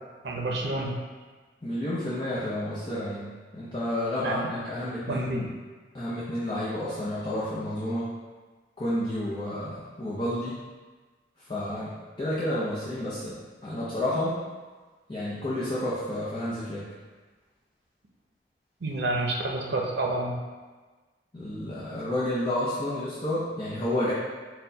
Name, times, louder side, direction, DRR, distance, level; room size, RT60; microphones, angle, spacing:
voice 1, 0.2-0.9 4.2-4.5 5.1-5.4 18.8-20.4, right 2 dB, 70° right, 0 dB, 0.6 m, -29 dB
voice 2, 1.6-5.5 5.9-8.1 8.8-10.6 11.5-14.4 15.1-16.9 21.3-24.1, left 1 dB, 30° left, -10 dB, 0.6 m, -30 dB
4.4 x 2.2 x 3.9 m, 1.3 s
head